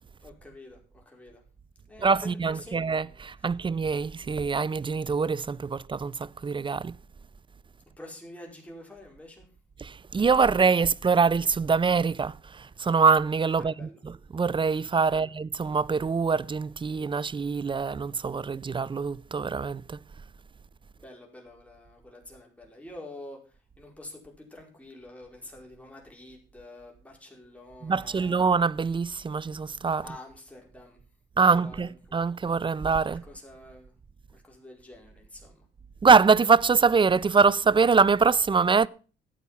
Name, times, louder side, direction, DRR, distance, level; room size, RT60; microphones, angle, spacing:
voice 1, 0.2-1.4 1.9-2.9 3.4-3.5 8.0-9.5 13.6-14.0 15.0-15.3 21.0-28.4 30.0-31.0 31.5-32.2 33.0-33.9 34.3-35.7, left 1 dB, 5° left, 4.7 m, -47 dB
voice 2, 2.0-6.9 9.8-20.0 27.8-30.0 31.4-33.2 36.0-38.9, right 5 dB, 25° right, 0.5 m, -24 dB
12.5 x 8.3 x 5.7 m
cardioid pair, 90°, 20 cm